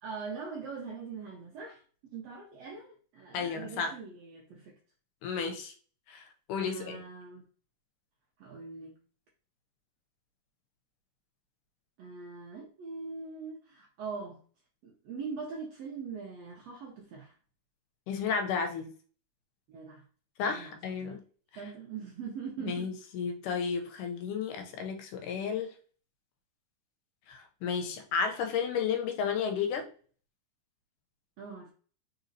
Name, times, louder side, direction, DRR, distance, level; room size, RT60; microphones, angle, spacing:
voice 1, 0.0-4.7 6.7-7.4 8.4-8.9 12.0-14.4 14.8-17.3 19.7-20.0 20.5-21.2 21.6-22.9 31.4-31.7, right 5 dB, 75° right, 1.5 m, -42 dB
voice 2, 3.3-3.9 5.2-5.7 6.1-6.2 6.5-7.0 18.1-18.9 20.4-21.2 22.7-25.7 27.3-29.9, left 6 dB, 80° left, 2.1 m, -32 dB
4.6 x 4.1 x 2.7 m
omnidirectional pair, 3.9 m